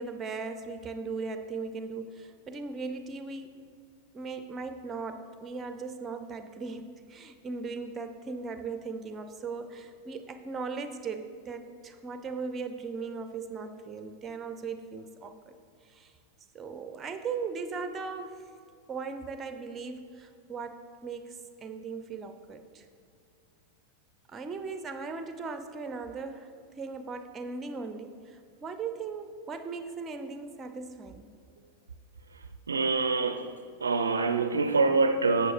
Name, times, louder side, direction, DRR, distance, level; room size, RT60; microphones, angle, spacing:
voice 1, 0.0-3.7 4.1-15.5 15.9-16.1 16.5-18.5 18.9-22.8 24.3-31.3, right 4 dB, 20° right, 0.5 m, -38 dB
voice 2, 32.7-33.5 33.8-35.5, right 3 dB, 75° right, 0.4 m, -25 dB
11.0 x 7.7 x 2.5 m
figure-of-eight pair, 90°, 0 cm